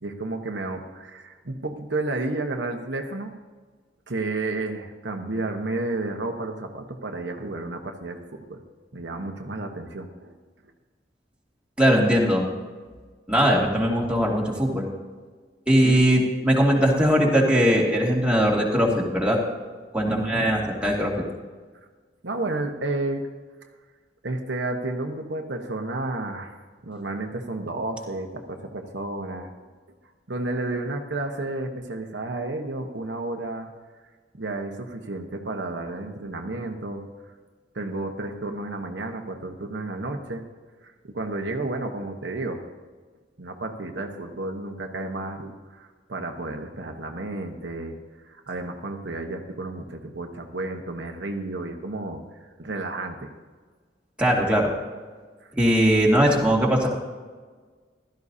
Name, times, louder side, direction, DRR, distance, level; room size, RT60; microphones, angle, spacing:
voice 1, 0.0-3.3 4.1-8.6 8.9-10.3 15.8-16.0 20.0-20.5 22.2-23.2 24.2-26.5 26.8-29.5 30.3-33.7 34.4-37.0 37.7-40.4 41.0-42.6 43.4-48.0 48.2-53.3 55.4-55.5, right 2 dB, 75° right, 3 dB, 1.2 m, -31 dB
voice 2, 11.8-12.5 13.3-14.9 15.7-19.4 19.9-21.2 54.2-54.7 55.6-56.9, equal, 5° right, -4 dB, 2.3 m, -20 dB
16.0 x 13.0 x 2.8 m, 1.5 s
head